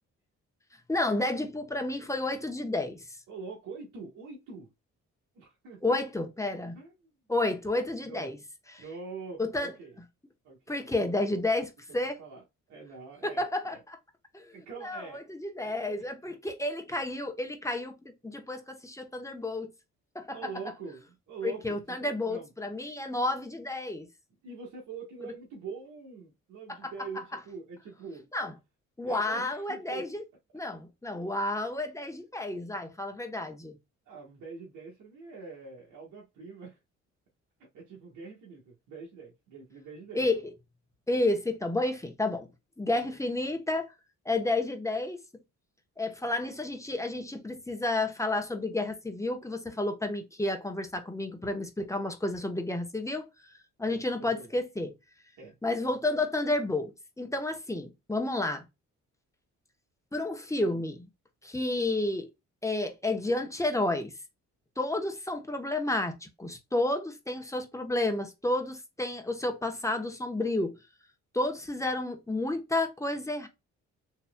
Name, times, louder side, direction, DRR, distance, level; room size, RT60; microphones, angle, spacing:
voice 1, 0.9-3.2 5.8-6.8 7.3-8.4 9.4-9.7 10.7-12.2 13.2-14.0 14.3-14.5 14.8-17.9 18.2-19.7 20.1-20.4 21.4-24.1 26.8-26.9 28.3-28.5 29.0-30.2 30.5-33.8 40.1-40.4 41.1-42.5 42.8-43.9 44.2-45.2 46.0-53.3 53.8-54.9 55.6-58.6 60.1-61.1 61.4-62.3 62.6-64.1 64.8-70.8 71.3-73.5, left 2 dB, 10° left, 1.0 m, -31 dB
voice 2, 3.3-4.7 5.3-6.0 6.7-7.1 8.0-8.3 8.8-10.0 10.4-10.8 11.9-13.8 14.5-15.2 15.6-16.4 20.3-22.5 24.4-28.3 29.0-30.1 34.0-36.8 37.6-40.3 53.9-54.5 55.4-55.6, right 5 dB, 80° right, 1.5 m, -44 dB
4.3 x 3.1 x 2.3 m
cardioid pair, 90°, 30 cm